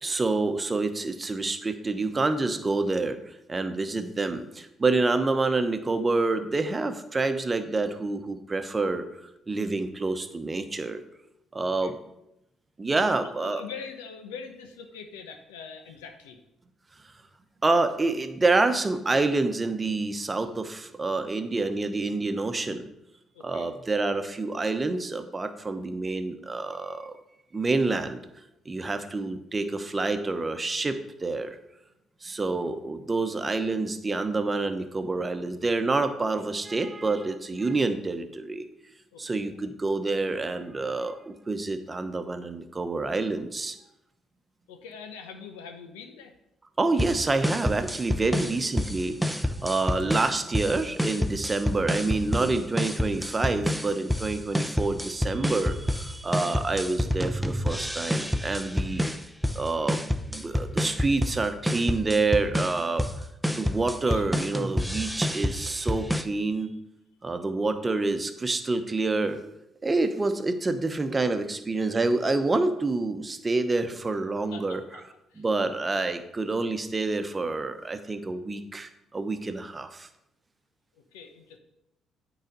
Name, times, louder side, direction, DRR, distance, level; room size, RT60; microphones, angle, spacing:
voice 1, 0.0-9.0 9.5-11.0 11.5-12.0 12.8-13.6 17.6-22.9 23.4-27.1 27.5-28.2 28.6-31.6 32.2-38.6 39.2-43.7 46.8-59.0 59.5-60.0 60.3-63.1 63.5-66.7 67.2-69.4 69.8-74.8 75.4-80.1, right 3 dB, 30° right, 8 dB, 0.9 m, -27 dB
voice 2, 11.6-11.9 13.1-13.2 13.4-16.4 23.3-23.7 39.1-39.2 44.7-46.3 48.3-48.6 49.8-50.1 63.8-64.3 74.5-75.0 75.3-75.7 81.1-81.6, left 6 dB, 85° left, 6 dB, 0.9 m, -43 dB
sound 1, 47.0-66.2, equal, ahead, 0.7 m, -29 dB
9.0 x 4.0 x 5.4 m, 0.85 s
hypercardioid pair, 50°, 0 cm